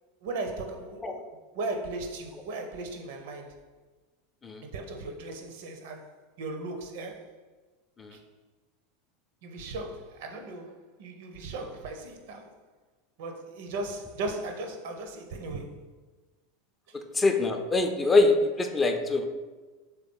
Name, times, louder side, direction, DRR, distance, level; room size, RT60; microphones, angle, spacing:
voice 1, 0.2-1.3 1.5-3.6 4.6-7.4 8.1-8.2 9.4-12.6 13.2-15.9 16.9-17.0, right 2 dB, 55° right, 0.5 m, -37 dB
voice 2, 16.9-19.3, left 3 dB, 20° left, 0.4 m, -24 dB
3.4 x 2.9 x 3.6 m
figure-of-eight pair, 80°, 0 cm